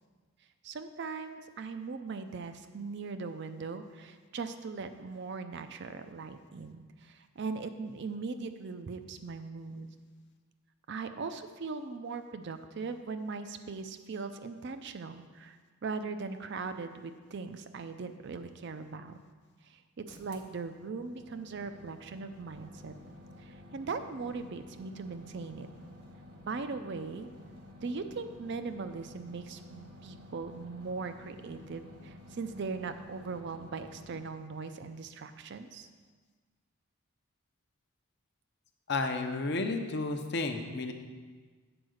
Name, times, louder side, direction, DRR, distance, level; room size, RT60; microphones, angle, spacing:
voice 1, 0.6-9.9 10.9-19.2 19.6-23.0 23.4-25.7 26.4-27.3 27.8-35.9, right 4 dB, 55° right, 9 dB, 0.4 m, -39 dB
sound 1, 20.1-34.2, left 1 dB, 90° right, 1.3 m, -52 dB
voice 2, 38.9-40.9, left 3 dB, 50° left, 5 dB, 0.6 m, -32 dB
7.8 x 4.7 x 6.4 m, 1.5 s
head